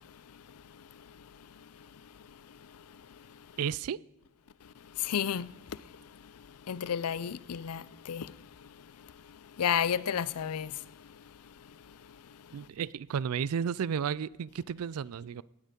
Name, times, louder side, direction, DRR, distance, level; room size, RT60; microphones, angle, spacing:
voice 1, 3.6-4.0 12.5-15.4, right 7 dB, 80° right, 0.4 m, -33 dB
voice 2, 5.0-5.5 6.7-8.3 9.6-10.7, left 8 dB, 85° left, 0.5 m, -31 dB
17.5 x 9.0 x 5.2 m
head